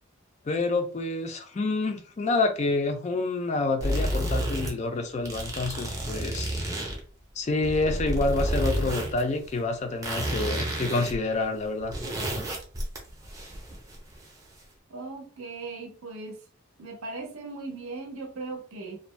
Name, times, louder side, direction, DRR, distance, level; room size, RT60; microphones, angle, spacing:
voice 1, 0.4-6.6 7.4-12.0, left 3 dB, 30° left, 0.3 m, -28 dB
sound 1, 3.8-4.7 5.2-7.0 7.5-9.2 9.5-9.6 10.0-11.2 11.4-11.5 11.8-14.2, right 1 dB, 15° right, 0.5 m, -30 dB
voice 2, 14.9-16.4 16.8-19.0, right 3 dB, 70° right, 0.6 m, -38 dB
2.5 x 2.1 x 3.1 m
head